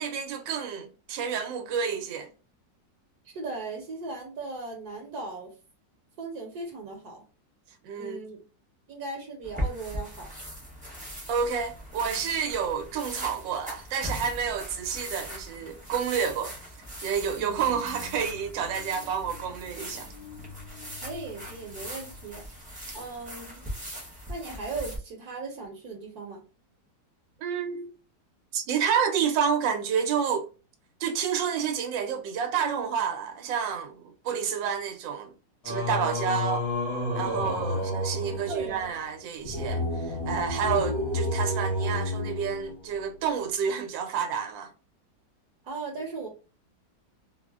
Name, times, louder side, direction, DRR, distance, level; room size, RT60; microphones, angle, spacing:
voice 1, 0.0-2.3 7.8-8.2 11.3-16.5 17.0-20.1 27.4-27.9 28.5-30.5 31.0-35.3 35.6-36.7 37.1-44.7, right 7 dB, 80° right, 1.3 m, -29 dB
voice 2, 3.2-5.5 6.2-7.2 8.0-8.4 8.9-10.3 17.3-17.6 20.9-22.5 22.9-23.6 24.3-26.4 37.7-37.8 38.3-39.0 45.6-46.3, right 3 dB, 65° right, 1.2 m, -38 dB
sound 1, 9.4-25.0, equal, 5° right, 0.7 m, -40 dB
sound 2, 17.2-23.2, left 5 dB, 75° left, 1.5 m, -48 dB
Singing, 35.6-43.0, left 1 dB, 60° left, 1.7 m, -30 dB
3.8 x 2.1 x 2.3 m
omnidirectional pair, 2.0 m